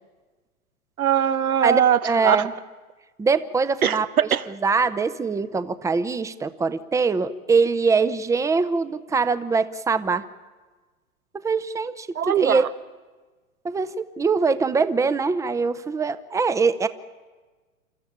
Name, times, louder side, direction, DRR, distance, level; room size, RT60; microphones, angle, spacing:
voice 1, 1.0-2.5 3.8-4.4 12.1-12.7, right 9 dB, 85° right, 12 dB, 1.2 m, -21 dB
voice 2, 1.6-2.5 3.2-4.1 4.6-10.2 11.4-12.6 13.6-16.9, right 4 dB, 5° right, 13 dB, 0.7 m, -23 dB
28.5 x 13.5 x 10.0 m, 1.3 s
hypercardioid pair, 115°, 42 cm